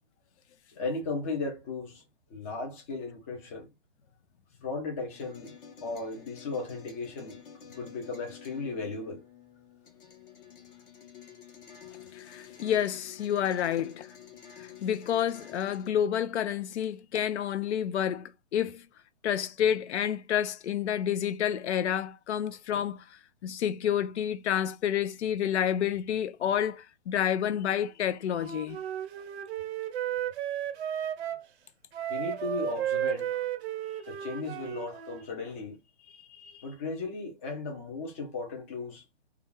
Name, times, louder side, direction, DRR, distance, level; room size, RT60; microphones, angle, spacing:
voice 1, 0.7-2.0 2.3-3.7 4.6-5.5 5.8-7.4 7.8-9.2 29.2-29.3 31.2-31.4 32.1-33.5 34.1-35.8 36.6-39.0, left 3 dB, 15° left, 0.3 m, -36 dB
sound 1, 5.1-15.9, left 8 dB, 50° left, 0.9 m, -50 dB
voice 2, 12.1-14.1 14.6-18.8 19.2-23.0 23.4-28.8 36.1-36.6, left 9 dB, 75° left, 0.5 m, -29 dB
Wind instrument woodwind instrument, 28.3-31.4 31.9-35.2, right 10 dB, 65° right, 0.6 m, -34 dB
2.4 x 2.3 x 3.0 m
hypercardioid pair, 140°, 34 cm